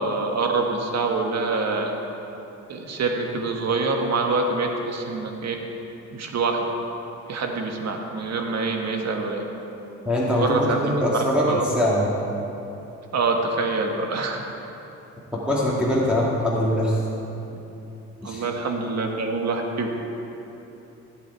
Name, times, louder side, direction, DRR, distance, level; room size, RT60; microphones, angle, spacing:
voice 1, 0.0-1.9 2.7-5.5 6.1-6.7 7.3-9.4 10.3-11.2 11.5-11.6 13.1-14.4 18.2-19.9, right 3 dB, 60° right, 3 dB, 1.5 m, -25 dB
voice 2, 10.1-12.2 15.3-17.0 18.2-18.4, equal, 5° right, -7 dB, 2.1 m, -22 dB
16.5 x 8.4 x 4.7 m, 3.0 s
cardioid pair, 90°, 30 cm